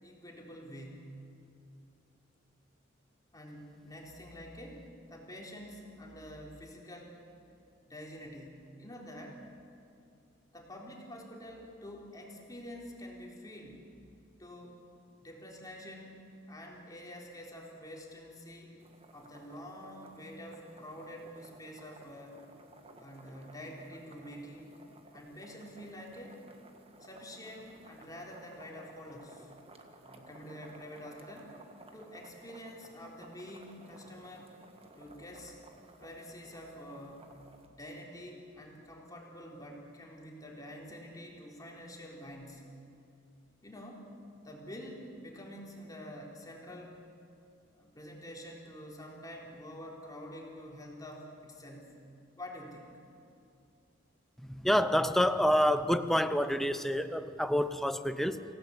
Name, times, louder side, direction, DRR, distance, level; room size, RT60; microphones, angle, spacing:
voice 1, 0.0-1.2 3.3-7.2 7.8-9.4 10.5-13.8 14.4-14.8 15.2-18.7 19.1-22.4 23.0-24.8 25.1-26.4 27.0-29.5 30.1-31.6 31.9-34.6 35.0-35.6 36.0-37.4 37.7-42.7 43.6-44.1 44.4-47.0 47.7-52.0 52.4-52.9, equal, 20° left, -1 dB, 3.8 m, -47 dB
sound 1, 18.8-37.7, right 2 dB, 30° right, 1.7 m, -56 dB
voice 2, 54.4-58.4, equal, ahead, 10 dB, 0.8 m, -28 dB
27.0 x 17.0 x 8.2 m, 2.6 s
head